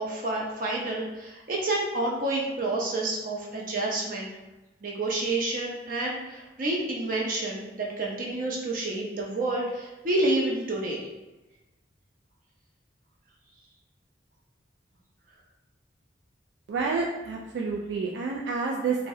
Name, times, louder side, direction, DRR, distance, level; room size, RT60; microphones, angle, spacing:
voice 1, 0.0-4.3 4.8-11.1, right 2 dB, 50° right, -3 dB, 0.6 m, -29 dB
voice 2, 16.7-19.1, right 4 dB, 85° right, -1 dB, 0.3 m, -29 dB
2.6 x 2.0 x 3.5 m, 1.1 s
head